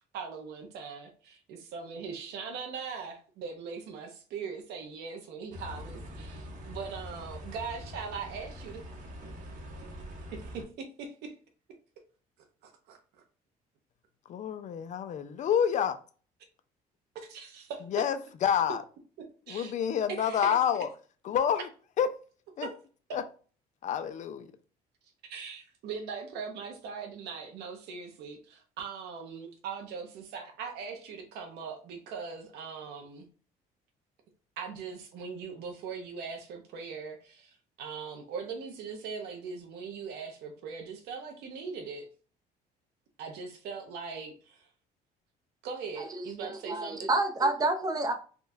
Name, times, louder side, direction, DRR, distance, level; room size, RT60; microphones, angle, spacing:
voice 1, 0.0-8.8 10.3-10.6 11.0-11.3 12.6-13.0 17.1-17.8 19.5-19.7 20.1-20.6 22.6-22.7 25.3-33.3 34.6-42.1 43.2-44.7 45.6-47.1, right 5 dB, 80° right, 0.6 m, -40 dB
sound 1, 5.5-10.6, left 1 dB, 50° right, 0.9 m, -43 dB
voice 2, 14.3-16.0 17.9-18.8 19.5-20.9 21.2-21.7 22.0-22.1 22.6-22.7 23.1-23.2 23.8-24.5, left 8 dB, 45° left, 0.4 m, -28 dB
voice 3, 46.0-48.1, right 2 dB, 20° right, 0.6 m, -29 dB
3.7 x 2.2 x 2.6 m
cardioid pair, 110°, 17 cm